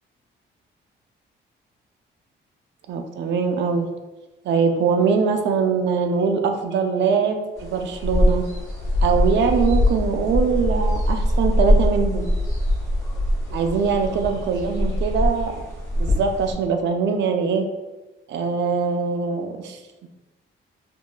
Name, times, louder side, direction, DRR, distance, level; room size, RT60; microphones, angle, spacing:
voice 1, 2.9-3.9 4.4-8.5 9.0-12.3 13.5-15.5 16.0-17.7 18.3-20.1, right 5 dB, 65° right, 5 dB, 0.4 m, -22 dB
sound 1, 7.6-16.5, left 1 dB, 15° left, 0.9 m, -22 dB
2.9 x 2.2 x 2.3 m, 1.1 s
cardioid pair, 90°, 20 cm